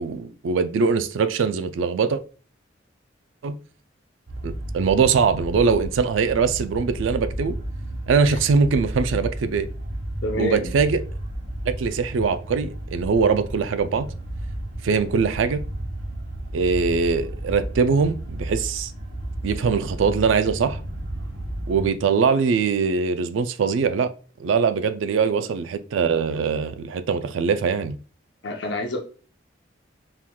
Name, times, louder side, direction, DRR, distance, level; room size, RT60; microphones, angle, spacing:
voice 1, 0.0-2.2 3.4-3.6 4.4-7.5 8.1-9.7 10.3-11.0 11.8-14.1 14.8-15.6 16.5-18.9 19.4-20.8 21.7-24.1 24.4-28.0, right 5 dB, 90° right, 0.4 m, -22 dB
sound 1, 4.3-21.9, right 1 dB, 65° right, 0.9 m, -33 dB
voice 2, 10.2-10.7 25.4-25.5 28.4-29.0, left 2 dB, 65° left, 0.6 m, -28 dB
4.5 x 3.6 x 2.2 m
head